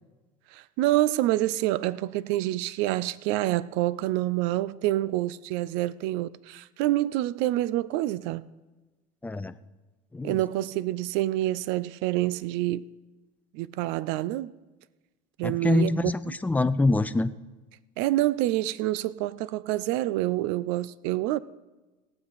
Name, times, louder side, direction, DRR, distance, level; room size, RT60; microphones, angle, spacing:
voice 1, 0.5-8.4 10.2-12.8 13.5-14.5 15.4-16.3 18.0-21.4, right 15 dB, 75° right, 0.5 m, -27 dB
voice 2, 9.2-9.5 10.1-10.4 15.4-17.4, left 2 dB, 10° left, 0.5 m, -25 dB
17.5 x 7.8 x 4.1 m
supercardioid pair, 105°, 18 cm